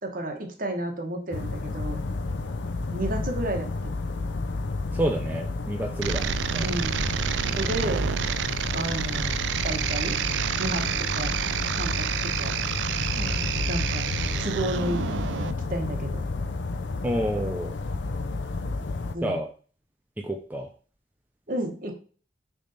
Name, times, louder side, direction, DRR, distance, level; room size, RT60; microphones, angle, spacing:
voice 1, 0.0-2.0 2.9-3.9 6.6-7.2 7.5-8.0 8.7-9.3 9.6-10.2 10.6-11.3 11.8-12.6 13.7-14.1 14.4-16.2 19.1-19.4 21.5-21.9, right 1 dB, 50° right, 3 dB, 1.3 m, -32 dB
sound 1, 1.3-19.1, left 3 dB, 85° left, 0.6 m, -31 dB
voice 2, 4.9-6.7 13.1-13.6 17.0-17.7 19.2-19.5 20.2-20.7, equal, 10° right, 2 dB, 0.5 m, -29 dB
sound 2, 6.0-15.5, right 8 dB, 85° right, 0.4 m, -29 dB
6.5 x 3.5 x 4.1 m, 0.40 s
head